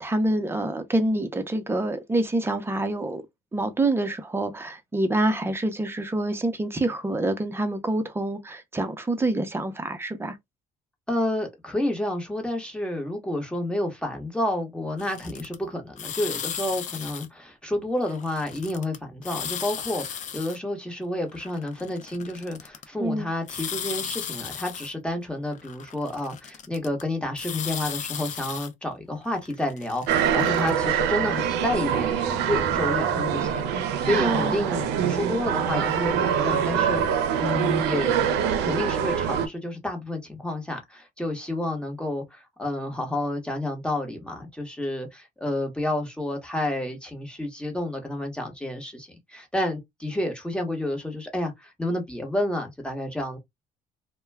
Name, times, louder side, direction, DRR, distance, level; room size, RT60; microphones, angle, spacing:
voice 1, 0.0-3.2 3.5-10.4 23.0-23.3 34.2-34.5, right 1 dB, 15° right, 0.6 m, -26 dB
voice 2, 11.1-37.0 37.4-38.2 38.6-53.4, left 1 dB, 5° left, 1.0 m, -30 dB
sound 1, 15.0-15.5 16.0-17.2 18.0-19.0 19.2-20.6 21.3-22.8 23.5-24.9 25.5-27.0 27.4-28.7 29.3-30.7, left 8 dB, 45° left, 0.5 m, -35 dB
sound 2, 30.1-39.5, right 8 dB, 85° right, 0.5 m, -24 dB
2.2 x 2.2 x 3.3 m
cardioid pair, 110°, 17 cm